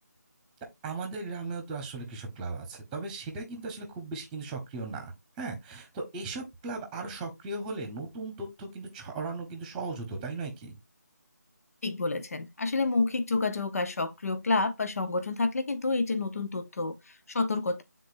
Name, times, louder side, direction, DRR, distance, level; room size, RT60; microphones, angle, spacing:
voice 1, 0.8-5.0 5.4-10.8, right 3 dB, 10° right, 1.2 m, -37 dB
voice 2, 11.8-17.8, left 3 dB, 55° left, 1.0 m, -29 dB
9.3 x 3.9 x 2.6 m
figure-of-eight pair, 160°, 9 cm